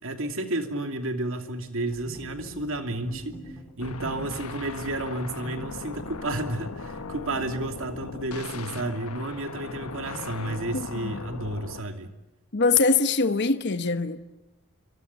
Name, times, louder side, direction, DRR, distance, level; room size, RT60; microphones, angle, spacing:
voice 1, 0.0-12.1, right 2 dB, 60° right, 2.8 m, -32 dB
sound 1, 1.8-6.8, equal, 20° left, 4.6 m, -48 dB
sound 2, 2.0-2.7 3.0-4.7 5.2-11.3, equal, 35° right, 2.9 m, -47 dB
sound 3, 3.8-11.8, left 4 dB, 80° left, 1.3 m, -38 dB
voice 2, 12.5-14.2, left 4 dB, 50° left, 1.1 m, -23 dB
28.0 x 25.5 x 7.2 m
head